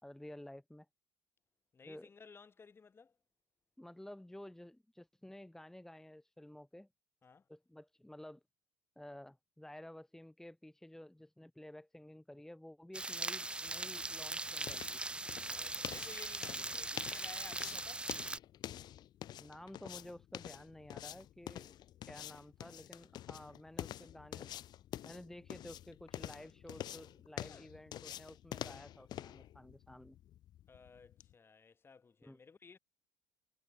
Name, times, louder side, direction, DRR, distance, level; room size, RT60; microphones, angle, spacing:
voice 1, 0.0-0.9 1.9-2.1 3.8-6.9 7.5-8.4 9.0-15.0 19.4-21.8 22.0-24.5 25.0-30.2 32.2-32.4, left 1 dB, 5° left, 1.9 m, -52 dB
voice 2, 1.7-3.2 7.2-7.4 15.5-18.1 27.4-27.7 30.7-32.8, left 5 dB, 25° left, 3.8 m, -56 dB
sound 1, 12.9-18.4, right 2 dB, 10° right, 1.3 m, -40 dB
sound 2, 13.5-31.3, left 12 dB, 55° left, 2.0 m, -48 dB
supercardioid pair, 80°, 9 cm